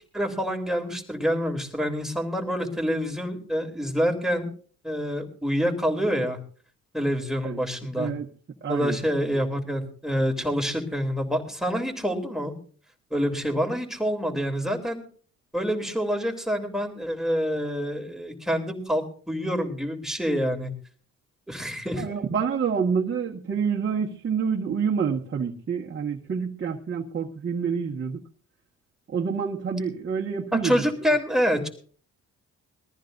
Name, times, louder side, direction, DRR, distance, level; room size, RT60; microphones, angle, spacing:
voice 1, 0.1-4.5 4.8-6.4 6.9-8.1 8.7-12.5 13.1-15.0 15.5-20.7 21.5-22.1 30.6-31.7, equal, ahead, 5 dB, 3.2 m, -27 dB
voice 2, 8.0-8.3 8.6-9.0 22.0-28.2 29.1-30.7, right 6 dB, 40° right, -2 dB, 1.6 m, -27 dB
21.5 x 14.5 x 2.7 m, 0.43 s
cardioid pair, 90°, 30 cm